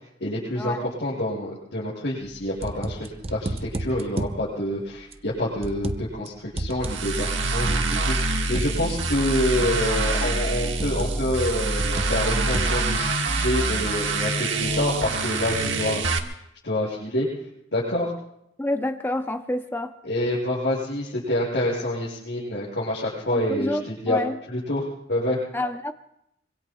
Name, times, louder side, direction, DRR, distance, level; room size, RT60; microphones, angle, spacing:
voice 1, 0.2-16.3 16.6-17.3 17.7-18.1 20.0-24.2 24.5-25.4, left 1 dB, 75° left, -8 dB, 6.6 m, -27 dB
sound 1, 2.2-4.4 5.1-6.3 6.5-8.8 9.6-10.0 10.8-11.3 11.8-12.9, right 1 dB, 35° right, 0.7 m, -32 dB
sound 2, 6.8-16.2, right 3 dB, 90° right, 1.5 m, -25 dB
voice 2, 18.6-19.9 23.3-24.4 25.5-25.9, left 1 dB, 10° left, 8 dB, 0.5 m, -28 dB
25.0 x 25.0 x 2.3 m, 0.78 s
head